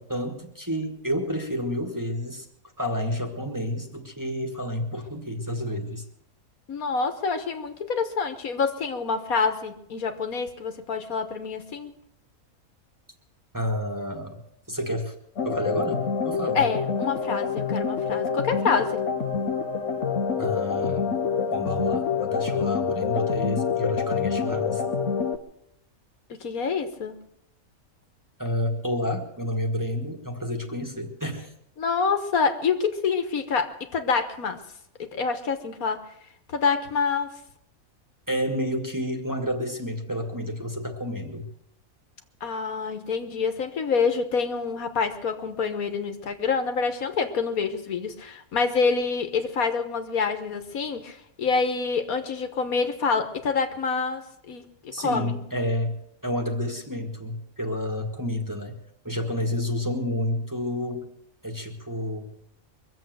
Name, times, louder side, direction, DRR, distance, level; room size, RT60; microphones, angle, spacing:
voice 1, 0.0-2.5 2.8-6.0 13.5-14.4 14.7-15.1 15.4-16.6 20.4-21.1 21.5-24.8 28.4-31.5 38.3-41.5 54.9-56.0 56.2-58.8 59.0-61.1 61.4-62.3, equal, 15° right, 3 dB, 1.7 m, -30 dB
voice 2, 6.7-12.0 16.6-19.0 26.3-27.2 31.8-34.6 35.0-36.1 36.5-37.4 42.4-55.4, left 5 dB, 75° left, 8 dB, 1.7 m, -27 dB
sound 1, 15.4-25.4, left 6 dB, 55° left, 1.3 m, -27 dB
23.0 x 7.7 x 7.8 m, 0.74 s
omnidirectional pair, 1.5 m